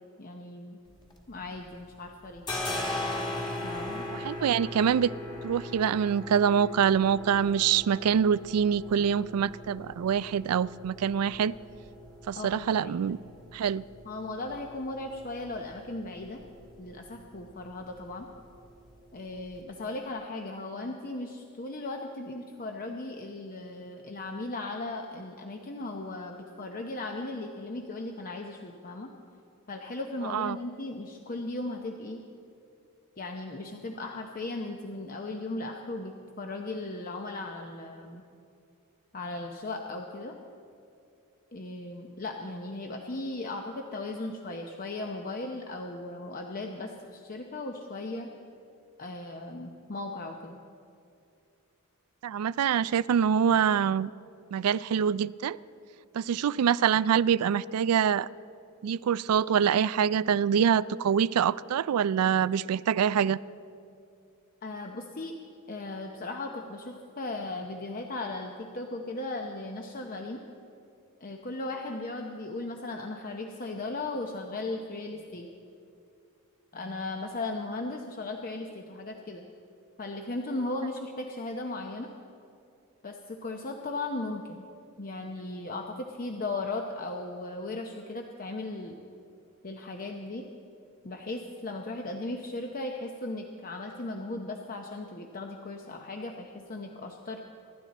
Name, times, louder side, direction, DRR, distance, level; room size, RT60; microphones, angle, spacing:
voice 1, 0.2-0.8 1.3-2.5 3.6-4.0 12.3-13.2 14.0-16.4 16.8-18.3 19.1-29.1 29.7-32.2 33.2-38.2 39.1-40.4 41.5-48.3 49.0-50.6 64.6-65.3 65.7-70.4 71.2-75.5 76.7-79.5 80.0-82.1 83.0-84.7 85.0-89.0 89.6-90.5 91.0-97.4, left 2 dB, 40° left, 2 dB, 0.8 m, -37 dB
sound 1, 0.9-1.8 2.1-19.6, left 1 dB, 20° left, 1.6 m, -40 dB
voice 2, 4.1-5.1 5.4-11.5 12.3-13.2 13.5-13.8 30.3-30.6 52.2-54.1 54.5-55.6 56.1-58.3 58.8-63.4, right 8 dB, 80° right, 19 dB, 0.3 m, -25 dB
25.0 x 11.5 x 4.1 m, 2.5 s
head